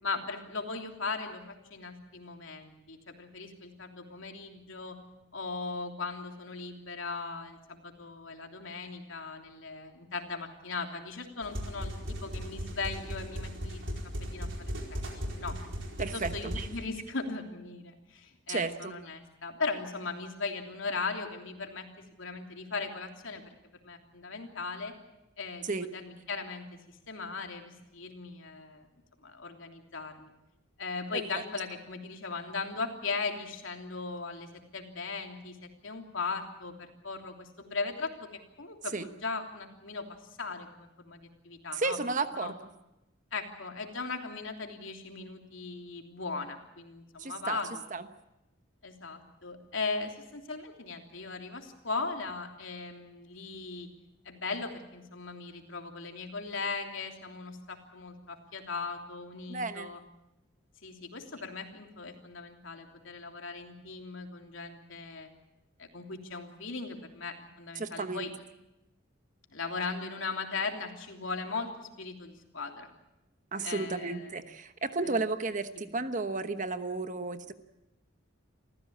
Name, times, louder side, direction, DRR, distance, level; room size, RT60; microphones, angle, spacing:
voice 1, 0.0-5.0 5.3-13.9 14.3-14.5 14.9-15.0 15.2-15.5 16.1-21.9 22.2-23.4 23.8-24.9 25.4-26.7 27.1-28.9 29.2-30.3 30.8-35.6 35.8-38.3 38.6-40.1 40.4-42.0 42.3-42.5 43.3-47.8 48.8-53.9 54.2-60.0 60.8-65.3 65.8-68.3 69.5-72.9 73.6-74.3 75.0-75.1 75.7-75.8, left 4 dB, 75° left, 3 dB, 3.2 m, -38 dB
sound 1, 11.4-16.7, equal, 65° right, 4.6 m, -37 dB
voice 2, 16.0-16.7 18.5-18.9 25.6-25.9 31.1-31.4 38.9-39.1 41.7-42.7 47.2-47.6 47.9-48.0 59.5-59.9 67.8-68.2 73.5-77.5, right 3 dB, 40° right, 9 dB, 1.1 m, -33 dB
27.5 x 15.5 x 8.7 m, 0.95 s
head